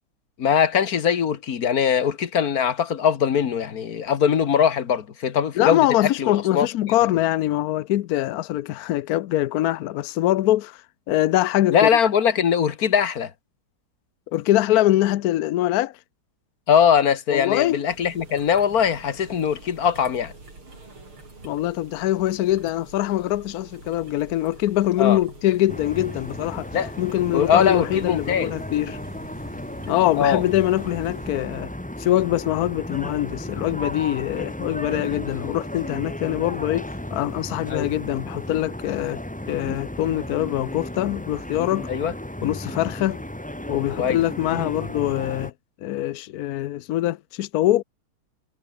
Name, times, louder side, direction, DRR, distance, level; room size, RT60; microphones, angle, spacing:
voice 1, 0.4-6.7 11.7-13.3 16.7-20.3 25.0-25.2 26.7-26.9 27.3-28.5 30.2-30.4 37.7-37.9 41.9-42.1 44.0-44.2, left 8 dB, 50° left, 1.7 m, -21 dB
voice 2, 5.6-11.9 14.3-16.0 17.3-17.8 21.4-26.7 27.0-29.0 29.9-31.7 32.0-39.2 39.5-41.9 42.4-43.2 43.7-45.5 45.8-47.8, left 14 dB, 80° left, 0.8 m, -23 dB
sound 1, 17.9-31.3, right 3 dB, 80° right, 7.7 m, -46 dB
sound 2, 25.7-45.5, left 1 dB, 5° left, 1.2 m, -34 dB
omnidirectional pair, 2.3 m